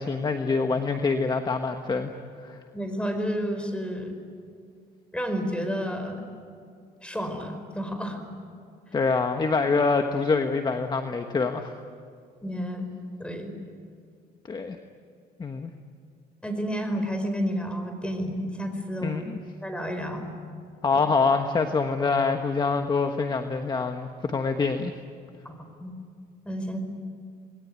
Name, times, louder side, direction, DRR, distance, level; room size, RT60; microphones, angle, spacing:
voice 1, 0.0-2.1 2.4-2.6 8.9-11.7 14.5-14.8 15.4-15.7 19.0-19.4 20.8-24.9, left 4 dB, 25° left, 6 dB, 1.4 m, -25 dB
voice 2, 2.7-4.1 5.1-6.2 7.0-8.2 12.4-12.9 13.2-13.5 16.4-19.2 19.6-20.3 20.9-21.0 25.4-25.9 26.4-26.8, equal, 5° left, 7 dB, 4.9 m, -31 dB
27.5 x 21.0 x 9.7 m, 2.3 s
cardioid pair, 110°, 17 cm